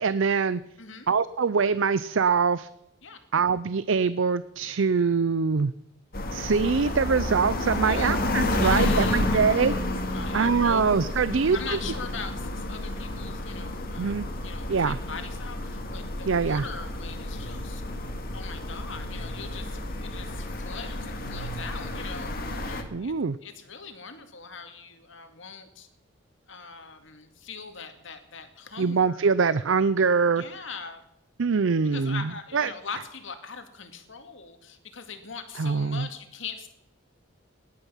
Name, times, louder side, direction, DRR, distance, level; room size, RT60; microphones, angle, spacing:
voice 1, 0.0-0.6 1.1-2.7 3.3-5.7 6.3-10.0 10.3-11.8 14.0-14.2 14.7-15.0 16.3-16.6 22.9-23.4 28.8-30.4 31.4-32.7 35.6-36.1, right 5 dB, 70° right, 16 dB, 0.5 m, -24 dB
voice 2, 0.8-1.1 3.0-3.2 7.8-8.2 8.6-9.8 10.1-10.8 11.3-17.8 18.3-23.1 23.4-25.9 26.5-29.3 30.3-31.0 31.8-36.7, left 5 dB, 65° left, 7 dB, 2.2 m, -41 dB
sound 1, 6.1-22.8, left 1 dB, 45° left, 2.1 m, -30 dB
18.0 x 11.5 x 5.7 m, 0.84 s
head